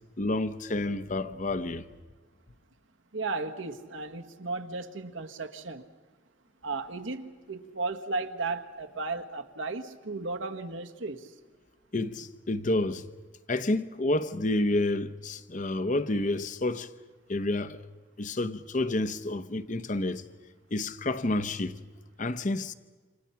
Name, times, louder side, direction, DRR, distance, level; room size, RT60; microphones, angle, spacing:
voice 1, 0.2-1.8 11.9-13.0 13.5-16.9 17.3-17.8 18.2-20.2 20.7-21.8 22.2-22.7, left 2 dB, 40° left, 0.9 m, -29 dB
voice 2, 3.1-5.9 6.6-11.3, right 3 dB, 90° right, 1.5 m, -35 dB
28.5 x 26.0 x 5.8 m
head